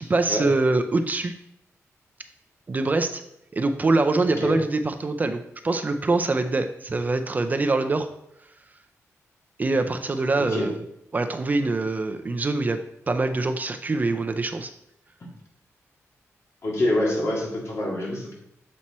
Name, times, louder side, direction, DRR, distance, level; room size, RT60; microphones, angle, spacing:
voice 1, 0.0-1.3 2.7-3.2 3.5-8.1 9.6-10.8 11.1-12.8 13.1-14.7, right 3 dB, 30° right, 8 dB, 0.5 m, -24 dB
voice 2, 16.6-18.3, left 1 dB, 60° left, -2 dB, 2.1 m, -26 dB
7.4 x 4.3 x 4.2 m, 0.77 s
wide cardioid pair, 125°, 5 cm